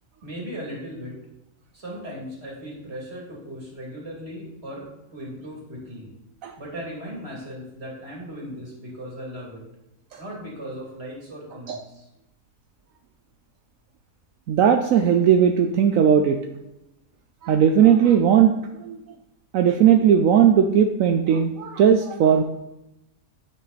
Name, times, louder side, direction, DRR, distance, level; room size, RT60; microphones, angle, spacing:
voice 1, 0.2-1.1 1.7-4.9 5.1-6.1 6.6-9.6 10.2-12.1, equal, 45° right, -3 dB, 3.1 m, -37 dB
voice 2, 14.5-16.4 17.4-19.0 19.5-22.4, right 8 dB, 70° right, 6 dB, 1.0 m, -18 dB
9.4 x 7.8 x 4.1 m, 0.90 s
omnidirectional pair, 1.5 m